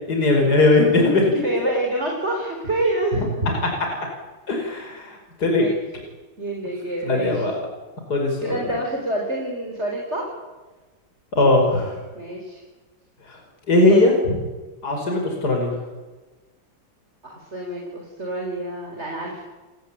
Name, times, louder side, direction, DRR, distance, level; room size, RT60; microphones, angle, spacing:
voice 1, 0.1-1.3 4.5-5.7 7.0-7.5 8.1-8.6 11.3-12.0 13.3-13.4 13.7-14.1 14.8-15.7, left 2 dB, 50° left, 2 dB, 5.7 m, -19 dB
voice 2, 1.4-3.5 5.6-5.7 6.4-7.5 8.4-10.3 12.1-12.6 13.9-14.0 14.3-14.4 17.2-19.4, right 1 dB, 30° right, 0 dB, 4.9 m, -27 dB
29.5 x 18.0 x 8.7 m, 1.2 s
omnidirectional pair, 2.2 m